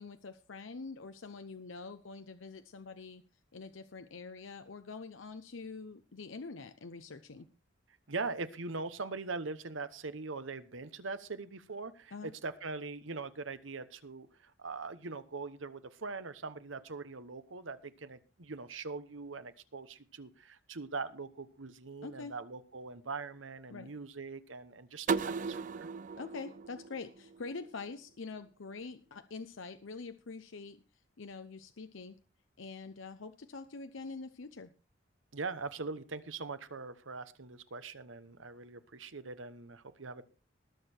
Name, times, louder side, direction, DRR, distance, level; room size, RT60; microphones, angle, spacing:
voice 1, 0.0-3.2 3.5-7.5 12.1-12.3 22.0-22.4 23.7-23.9 26.2-30.8 31.2-32.2 32.6-34.7, left 4 dB, 85° left, 9 dB, 0.7 m, -45 dB
voice 2, 8.1-25.9 35.3-40.2, right 4 dB, 85° right, 12 dB, 1.1 m, -42 dB
sound 1, 25.1-27.9, right 5 dB, 40° right, 0.5 m, -37 dB
19.5 x 6.7 x 4.4 m, 0.34 s
head